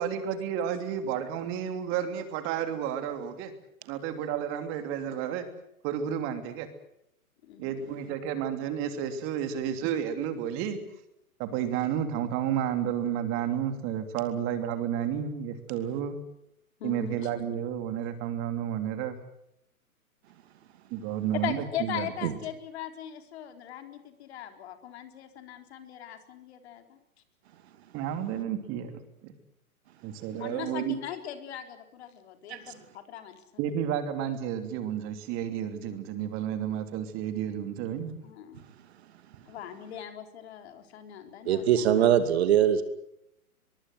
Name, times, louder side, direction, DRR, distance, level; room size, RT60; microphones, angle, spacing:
voice 1, 0.0-3.5 3.9-5.5 5.8-6.7 7.6-10.8 11.4-16.2 16.8-19.2 20.9-22.1 27.9-28.9 29.2-29.3 30.0-31.0 33.6-38.1, right 9 dB, 30° right, 9 dB, 3.0 m, -31 dB
voice 2, 7.4-8.2 16.8-17.3 21.4-27.0 30.4-33.4 38.2-38.6 39.5-42.1, left 10 dB, 45° left, 7 dB, 4.0 m, -40 dB
voice 3, 41.4-42.8, right 10 dB, 45° right, 10 dB, 2.6 m, -22 dB
23.5 x 23.0 x 8.0 m, 0.79 s
figure-of-eight pair, 130°, 44 cm